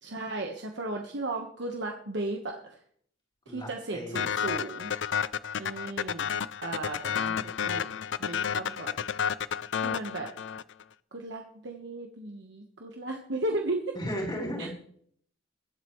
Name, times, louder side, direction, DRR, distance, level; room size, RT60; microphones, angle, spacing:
voice 1, 0.0-2.7 3.5-4.9 5.6-6.4 6.6-7.8 8.2-8.9 9.8-10.3 11.1-14.0 14.6-14.7, right 2 dB, 60° right, 1 dB, 1.4 m, -35 dB
voice 2, 3.5-4.3 7.6-7.9 13.9-14.7, equal, 25° left, -2 dB, 3.6 m, -35 dB
sound 1, 4.1-10.8, left 7 dB, 65° left, 0.5 m, -31 dB
23.0 x 8.1 x 3.2 m, 0.63 s
head